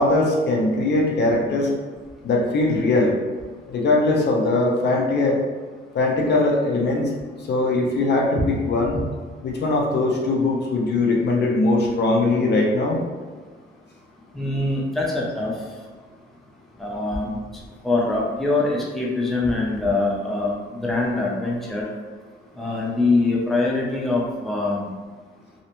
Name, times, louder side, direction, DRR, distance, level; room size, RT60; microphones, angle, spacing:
voice 1, 0.0-1.7 2.2-3.2 3.7-5.4 5.9-7.1 7.4-9.0 9.4-13.0, left 2 dB, 60° left, -1 dB, 0.5 m, -20 dB
voice 2, 14.3-15.5 16.8-17.4 17.8-20.5 20.8-21.8 22.6-24.9, left 2 dB, ahead, -4 dB, 0.5 m, -23 dB
2.6 x 2.0 x 2.9 m, 1.5 s
cardioid pair, 90°, 20 cm